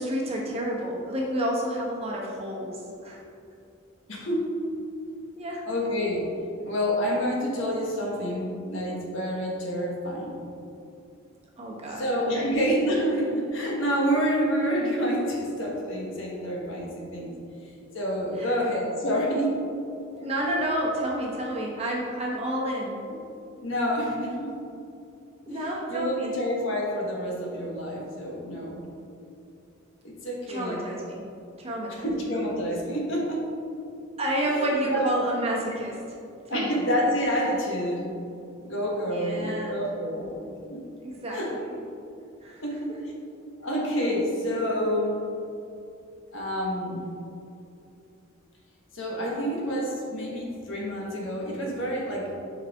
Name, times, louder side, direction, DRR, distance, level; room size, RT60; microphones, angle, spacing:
voice 1, 0.0-3.2 5.4-5.6 11.6-12.6 18.4-18.7 20.1-23.0 25.5-26.4 30.5-31.2 31.6-32.1 34.2-36.0 36.5-36.7 39.1-39.8 41.0-41.8 42.4-42.6, right 1 dB, 30° right, -3 dB, 1.0 m, -30 dB
voice 2, 4.1-4.5 5.6-6.3 6.6-10.4 12.0-17.3 17.9-19.5 23.6-24.5 25.5-25.6 25.9-28.8 30.0-30.9 31.9-33.4 34.5-35.1 35.7-35.8 36.5-38.2 38.6-40.8 41.3-41.6 42.6-43.2 43.6-45.2 46.3-47.0 48.9-52.3, equal, 70° left, -2 dB, 1.3 m, -28 dB
7.3 x 4.9 x 3.6 m, 2.6 s
head